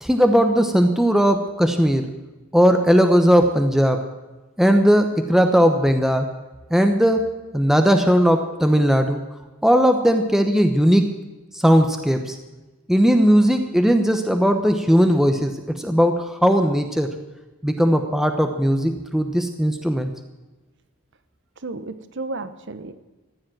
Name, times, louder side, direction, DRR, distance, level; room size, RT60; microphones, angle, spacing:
voice 1, 0.0-2.1 2.5-4.1 4.6-6.4 6.7-7.3 7.5-9.2 9.6-11.1 11.6-12.4 12.9-17.1 17.6-20.1, equal, ahead, 5 dB, 0.9 m, -18 dB
voice 2, 21.6-22.9, right 3 dB, 55° right, 12 dB, 1.0 m, -33 dB
15.0 x 10.5 x 7.6 m, 1.2 s
head